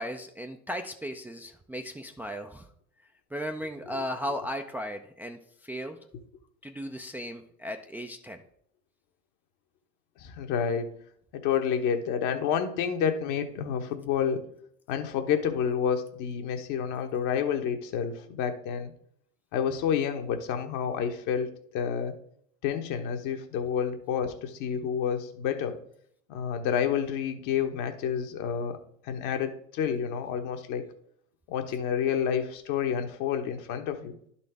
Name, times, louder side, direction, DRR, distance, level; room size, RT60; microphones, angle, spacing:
voice 1, 0.0-2.7 3.3-6.0 6.6-8.4, equal, 5° right, 3 dB, 0.4 m, -36 dB
voice 2, 10.2-10.9 11.3-14.5 14.9-18.9 19.5-22.1 22.6-25.8 26.3-28.8 29.0-30.9 31.5-34.2, left 7 dB, 45° left, 7 dB, 1.1 m, -29 dB
12.0 x 4.2 x 3.4 m, 0.68 s
figure-of-eight pair, 75°, 41 cm